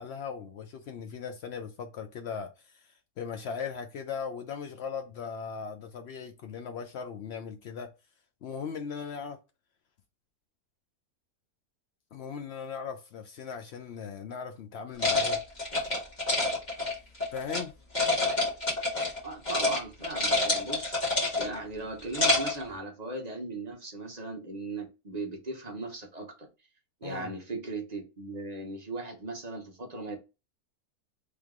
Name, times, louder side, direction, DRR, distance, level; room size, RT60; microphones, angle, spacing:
voice 1, 0.0-2.9 3.2-7.9 8.4-9.4 12.1-15.4 15.7-16.1 17.3-17.7 27.0-27.3, left 6 dB, 70° left, 0.6 m, -38 dB
sound 1, 15.0-17.6 17.9-19.2 19.4-19.8 20.0-21.6 22.0-22.6, left 2 dB, 30° left, 1.6 m, -27 dB
voice 2, 19.2-26.5 27.0-30.2, right 2 dB, 35° right, 0.8 m, -38 dB
3.4 x 3.1 x 3.5 m
omnidirectional pair, 1.6 m